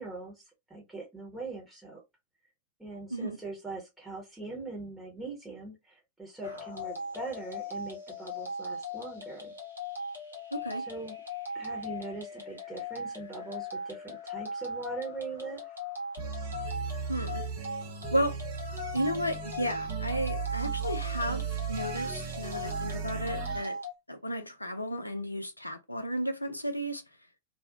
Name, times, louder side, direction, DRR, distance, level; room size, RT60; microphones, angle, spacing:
voice 1, 0.0-2.0 2.8-9.5 10.8-11.2 11.5-15.7, right 3 dB, 10° right, 0.9 m, -41 dB
sound 1, 6.4-23.9, left 2 dB, 85° right, 1.0 m, -39 dB
voice 2, 10.5-10.8 17.1-17.4 18.1-18.4 18.9-23.8 24.1-27.0, equal, 85° left, 0.4 m, -33 dB
sound 2, 16.2-23.7, right 7 dB, 50° right, 0.6 m, -36 dB
2.4 x 2.0 x 2.7 m
figure-of-eight pair, 90°, 0 cm